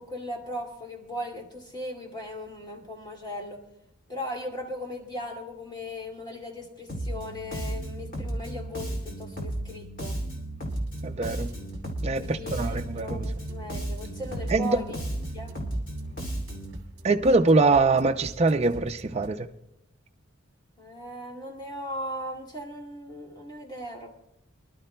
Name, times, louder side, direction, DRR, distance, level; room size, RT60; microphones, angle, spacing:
voice 1, 0.0-3.6 4.1-10.2 12.2-14.8 15.3-15.6 20.8-24.1, equal, 20° left, 2.3 m, -38 dB
Bass guitar, 6.9-16.8, right 1 dB, 45° left, 2.5 m, -34 dB
sound 1, 10.7-19.3, right 1 dB, 55° right, 1.7 m, -44 dB
voice 2, 11.0-11.5 12.0-13.3 14.5-14.8 17.0-19.5, right 3 dB, 30° right, 0.5 m, -23 dB
25.5 x 11.5 x 2.2 m
head